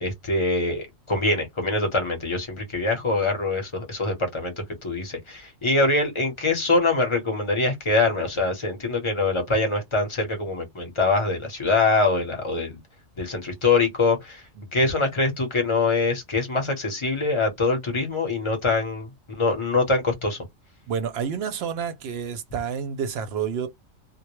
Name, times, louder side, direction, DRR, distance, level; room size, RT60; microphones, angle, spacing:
voice 1, 0.0-4.5 4.8-12.8 13.2-14.4 14.7-20.4, left 3 dB, 30° left, 0.7 m, -24 dB
voice 2, 14.6-14.9 20.9-23.7, right 7 dB, 65° right, 0.7 m, -29 dB
2.2 x 2.1 x 3.0 m
omnidirectional pair, 1.3 m